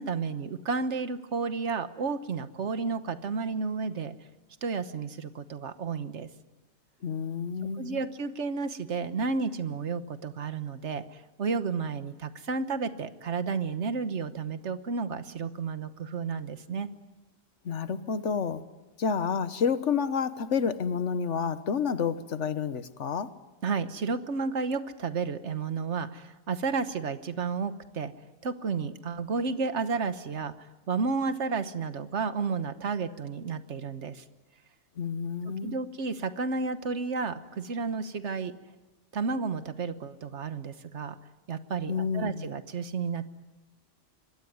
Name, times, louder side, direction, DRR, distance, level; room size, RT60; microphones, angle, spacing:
voice 1, 0.0-4.1 4.6-6.3 7.8-16.9 23.6-28.1 28.4-30.5 30.9-34.2 35.6-38.5 39.1-41.2 41.5-43.2, right 4 dB, 75° right, 12 dB, 1.5 m, -32 dB
voice 2, 7.0-8.0 17.6-18.6 19.0-23.3 35.0-35.8 41.9-42.5, left 6 dB, 85° left, 13 dB, 1.4 m, -29 dB
25.5 x 21.5 x 9.5 m, 1.1 s
omnidirectional pair, 1.2 m